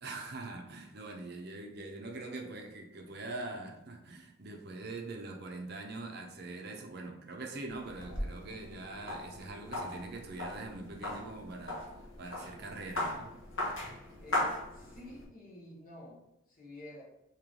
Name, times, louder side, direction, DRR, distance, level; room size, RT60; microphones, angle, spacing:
voice 1, 0.0-11.8 12.2-13.3, right 2 dB, 50° right, 2 dB, 0.6 m, -43 dB
sound 1, 7.7-15.2, left 1 dB, 70° left, 0.9 m, -38 dB
voice 2, 13.8-17.0, left 1 dB, 40° left, -4 dB, 1.2 m, -50 dB
3.2 x 2.9 x 3.7 m, 0.86 s
head